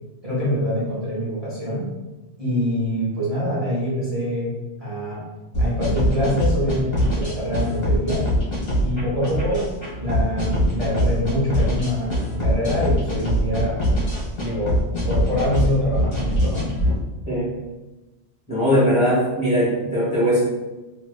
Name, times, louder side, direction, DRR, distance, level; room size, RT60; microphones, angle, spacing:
voice 1, 0.2-1.9 2.4-4.5 4.8-5.2 5.6-8.2 8.8-9.7 10.0-13.8 14.3-14.8 15.1-16.7, equal, 30° right, -9 dB, 1.1 m, -25 dB
sound 1, 5.5-16.9, equal, 55° left, 1.4 m, -22 dB
voice 2, 18.5-20.4, equal, 25° left, -9 dB, 1.4 m, -20 dB
3.1 x 3.0 x 2.3 m, 1.1 s
omnidirectional pair, 1.2 m